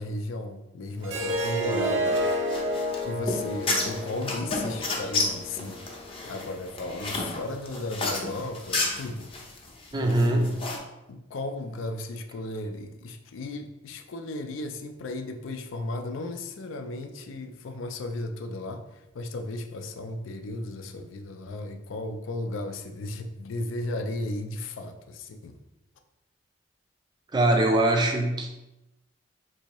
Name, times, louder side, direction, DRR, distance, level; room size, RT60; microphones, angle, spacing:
voice 1, 0.0-2.3 3.0-5.8 6.2-9.3 9.5-9.7 9.9-10.6 11.1-25.6, left 2 dB, 80° left, 6 dB, 0.4 m, -35 dB
Harp, 1.0-6.2, equal, 70° right, 0.5 m, -30 dB
sound 1, 1.1-10.8, left 3 dB, 30° left, 0.6 m, -32 dB
voice 2, 9.9-10.6 27.3-28.5, right 1 dB, 20° right, 3 dB, 0.4 m, -22 dB
3.8 x 2.7 x 2.9 m, 0.95 s
head